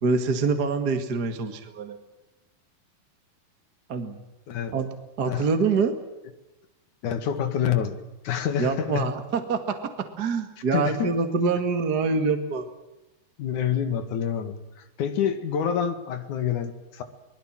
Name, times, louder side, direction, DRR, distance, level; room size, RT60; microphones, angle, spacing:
voice 1, 0.0-2.0 3.9-4.2 4.7-4.9 5.2-5.9 8.6-9.6 10.2-12.7, right 4 dB, 40° right, 7 dB, 1.5 m, -25 dB
voice 2, 7.0-8.0 8.2-9.1 10.7-11.1 13.4-14.6 15.0-17.0, left 8 dB, 55° left, 9 dB, 3.0 m, -27 dB
24.5 x 21.0 x 7.5 m, 1.0 s
omnidirectional pair, 4.7 m